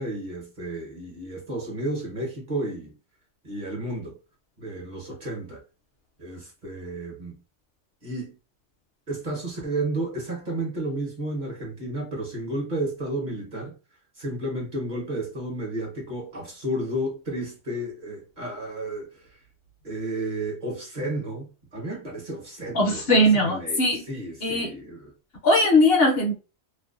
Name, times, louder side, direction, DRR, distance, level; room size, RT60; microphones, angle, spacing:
voice 1, 0.0-2.9 3.4-4.2 4.6-5.6 6.2-7.4 8.0-8.4 9.1-13.7 14.2-19.4 19.8-23.8 24.1-25.1, right 1 dB, 45° right, 0.9 m, -32 dB
voice 2, 22.7-24.0 24.4-24.8 25.4-26.3, left 1 dB, 60° left, 0.8 m, -20 dB
2.5 x 2.1 x 2.3 m
omnidirectional pair, 1.3 m